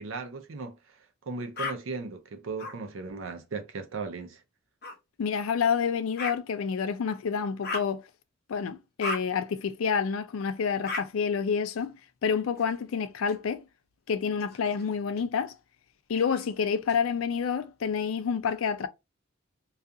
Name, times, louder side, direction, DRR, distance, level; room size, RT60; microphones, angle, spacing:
voice 1, 0.0-4.4, right 4 dB, 75° right, 0.5 m, -37 dB
sound 1, 1.5-1.7 2.6-2.7 4.8-4.9 6.2-6.3 7.6-7.9 9.0-9.2 10.8-11.0 12.5-13.3 14.3-15.2 16.1-17.0, left 3 dB, 50° left, 0.7 m, -36 dB
voice 2, 5.2-8.0 8.5-11.9 12.2-13.6 14.1-15.5 16.1-18.9, left 6 dB, 85° left, 0.4 m, -28 dB
2.4 x 2.4 x 2.6 m
head